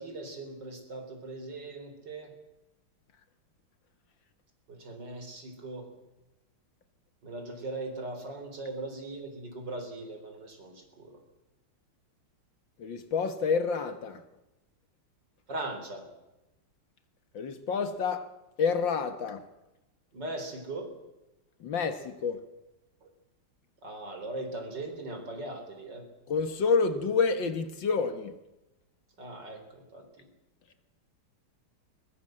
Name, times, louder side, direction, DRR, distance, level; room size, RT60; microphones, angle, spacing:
voice 1, 0.0-2.3 4.7-5.9 7.2-11.2 15.5-16.1 20.1-20.9 23.0-23.1 23.8-26.1 29.2-30.3, right 2 dB, 55° right, 4.4 m, -39 dB
voice 2, 12.8-14.2 17.3-18.3 18.6-19.4 21.6-22.4 26.3-28.3, left 5 dB, 65° left, 2.0 m, -28 dB
21.5 x 20.0 x 7.6 m
omnidirectional pair, 2.3 m